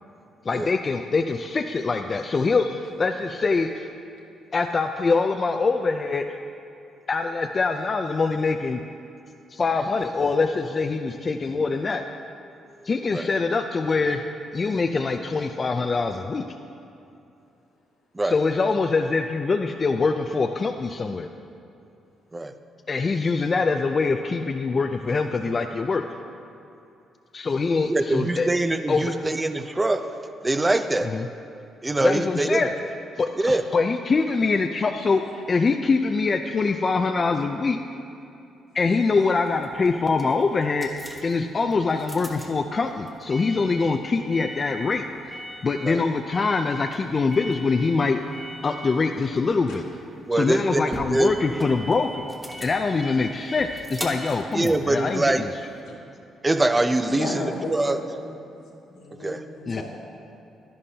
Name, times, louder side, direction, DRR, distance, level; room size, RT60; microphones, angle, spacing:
voice 1, 0.4-3.9 4.5-6.4 7.1-8.8 9.5-12.0 12.8-14.2 14.5-16.4 18.2-21.3 22.9-26.0 27.3-28.5 28.9-29.1 31.0-31.3 32.0-32.7 33.2-37.8 38.7-40.9 41.2-48.2 48.6-49.8 50.3-52.3 52.6-55.5 59.7-59.8, left 4 dB, 35° left, 5 dB, 0.4 m, -24 dB
voice 2, 27.9-30.1 30.4-31.1 31.8-32.7 33.4-33.6 45.8-46.0 50.3-51.3 54.5-55.4 56.4-58.0 59.2-59.4, right 2 dB, 15° right, 9 dB, 0.5 m, -23 dB
sound 1, 39.4-55.8, equal, ahead, 1.1 m, -41 dB
voice 3, 57.1-58.4 58.8-59.8, left 2 dB, 85° left, -3 dB, 2.1 m, -34 dB
11.5 x 10.5 x 2.8 m, 2.7 s
cardioid pair, 90°, 0 cm